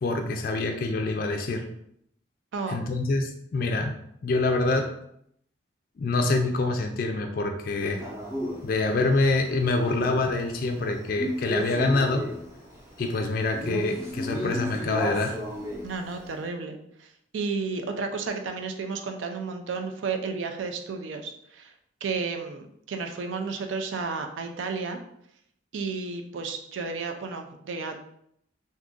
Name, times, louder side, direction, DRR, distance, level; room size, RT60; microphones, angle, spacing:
voice 1, 0.0-1.6 2.7-3.9 4.2-4.9 6.0-8.0 8.6-12.3 13.0-15.4, left 2 dB, 50° left, 4 dB, 0.3 m, -26 dB
Male speech man speaking, 7.8-16.3, equal, 15° right, 0.6 m, -34 dB
voice 2, 15.8-17.1 17.3-21.7 22.0-25.0 25.7-28.0, right 4 dB, 80° right, 5 dB, 0.4 m, -32 dB
2.6 x 2.4 x 3.6 m, 0.72 s
head